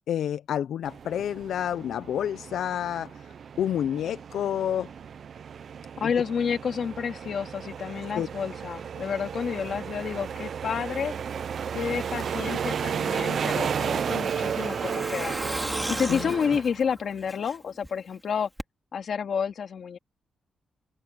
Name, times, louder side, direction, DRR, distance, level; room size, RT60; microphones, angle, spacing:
voice 1, 0.1-4.9 6.0-6.1 8.1-8.3 15.7-16.3, left 10 dB, 80° left, 0.5 m, -29 dB
sound 1, 0.8-16.6, right 7 dB, 50° right, 0.6 m, -33 dB
voice 2, 6.0-11.1 11.7-15.4 15.9-18.5 18.9-20.0, left 7 dB, 55° left, 2.2 m, -30 dB
Truck, 13.2-17.9 18.2-18.3 18.6-18.7, right 1 dB, 5° right, 2.2 m, -36 dB
wide cardioid pair, 165°, 0 cm